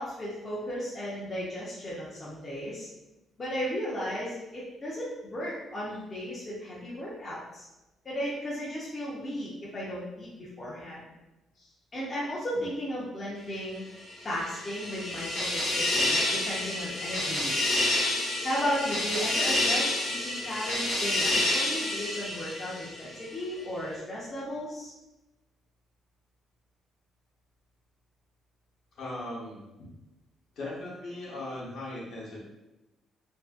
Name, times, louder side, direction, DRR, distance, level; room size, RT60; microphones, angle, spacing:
voice 1, 0.0-2.9 3.4-7.7 8.0-11.0 11.9-13.8 14.2-17.8 18.4-24.9, equal, 25° left, -7 dB, 0.5 m, -35 dB
sound 1, 14.1-23.2, left 1 dB, 85° left, 1.0 m, -29 dB
voice 2, 29.0-29.6 30.6-32.4, left 1 dB, 55° left, -6 dB, 0.9 m, -38 dB
2.5 x 2.4 x 2.3 m, 1.0 s
cardioid pair, 175°, 0 cm